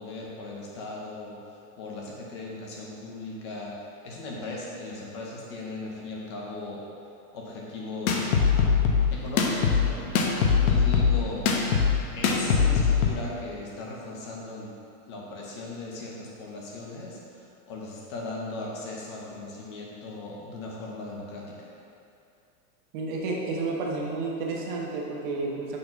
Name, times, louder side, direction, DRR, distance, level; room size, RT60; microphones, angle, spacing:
voice 1, 0.0-3.8 4.0-6.9 7.3-8.3 9.1-11.5 12.1-14.7 15.1-21.6, left 2 dB, 20° left, -3 dB, 0.5 m, -38 dB
sound 1, 8.1-13.1, left 6 dB, 65° left, 1.0 m, -22 dB
voice 2, 22.9-25.8, right 3 dB, 35° right, -2 dB, 1.0 m, -31 dB
6.5 x 4.2 x 5.6 m, 2.6 s
supercardioid pair, 170°, 46 cm